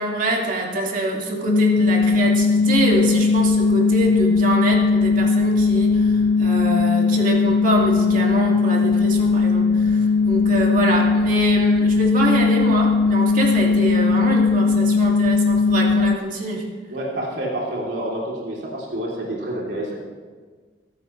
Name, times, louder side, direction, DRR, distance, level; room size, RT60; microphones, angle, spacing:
voice 1, 0.0-16.7, right 1 dB, 50° right, -1 dB, 2.6 m, -25 dB
sound 1, 1.5-16.2, left 4 dB, 60° left, 0.5 m, -18 dB
voice 2, 16.9-19.9, right 1 dB, 85° right, -5 dB, 3.4 m, -28 dB
22.5 x 12.5 x 3.3 m, 1.5 s
head